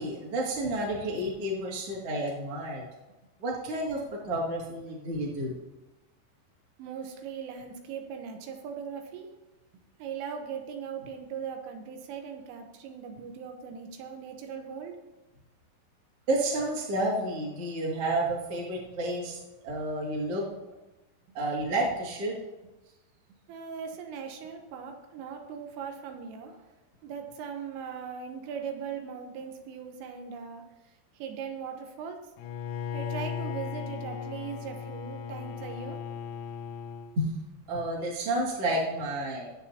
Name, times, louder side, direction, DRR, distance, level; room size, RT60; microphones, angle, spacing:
voice 1, 0.0-2.8 3.4-5.6 16.3-19.4 19.6-20.4 21.3-22.3 37.2-37.3 37.7-39.5, right 1 dB, 40° right, -4 dB, 2.4 m, -30 dB
voice 2, 6.8-9.3 10.0-15.0 23.5-26.6 27.0-30.6 31.2-32.2 32.9-36.0, right 7 dB, 85° right, 4 dB, 3.6 m, -39 dB
Bowed string instrument, 32.4-37.2, left 7 dB, 90° left, 3.3 m, -37 dB
20.5 x 8.2 x 2.9 m, 1.1 s
omnidirectional pair, 5.7 m